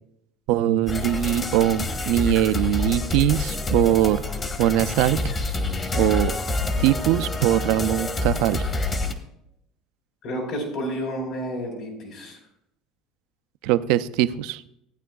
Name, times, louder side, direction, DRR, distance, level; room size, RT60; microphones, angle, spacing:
voice 1, 0.5-4.3 4.6-5.2 5.9-6.3 6.8-8.7 13.6-14.6, right 13 dB, 75° right, 12 dB, 0.4 m, -21 dB
sound 1, 0.9-9.1, left 2 dB, 30° left, 1.2 m, -27 dB
voice 2, 10.2-12.4, equal, 70° left, 0 dB, 3.6 m, -30 dB
15.0 x 9.0 x 2.3 m, 0.79 s
supercardioid pair, 100°, 0 cm